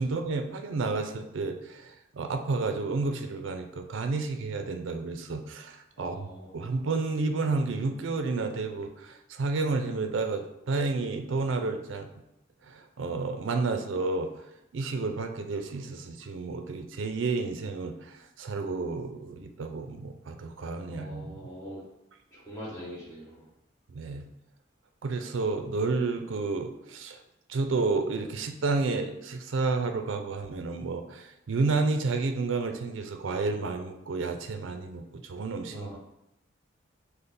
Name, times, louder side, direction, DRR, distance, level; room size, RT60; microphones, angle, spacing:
voice 1, 0.0-6.3 6.5-12.1 12.7-14.3 14.7-21.4 23.9-24.3 25.0-27.2 27.5-36.0, right 3 dB, 70° right, 6 dB, 0.4 m, -31 dB
voice 2, 6.0-6.5 20.9-21.8 22.5-23.4 35.7-36.0, equal, 15° left, -6 dB, 1.4 m, -42 dB
5.4 x 2.1 x 4.0 m, 0.87 s
head